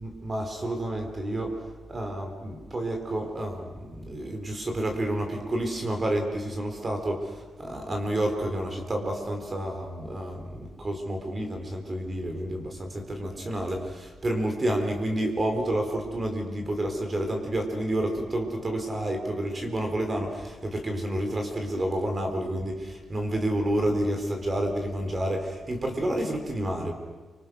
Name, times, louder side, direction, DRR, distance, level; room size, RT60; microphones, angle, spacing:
voice 1, 0.0-26.9, right 1 dB, 25° right, 4 dB, 4.4 m, -29 dB
29.5 x 26.0 x 6.5 m, 1.4 s
wide cardioid pair, 165°, 0 cm